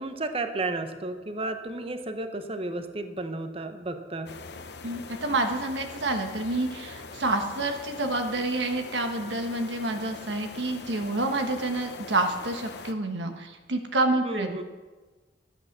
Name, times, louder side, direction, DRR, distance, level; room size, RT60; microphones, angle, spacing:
voice 1, 0.0-4.4 14.2-14.6, right 2 dB, 35° right, 8 dB, 0.9 m, -32 dB
sound 1, 4.3-12.9, left 4 dB, 70° left, 0.9 m, -42 dB
voice 2, 4.8-14.6, right 2 dB, 85° right, 5 dB, 1.3 m, -28 dB
11.5 x 8.5 x 6.6 m, 1.3 s
head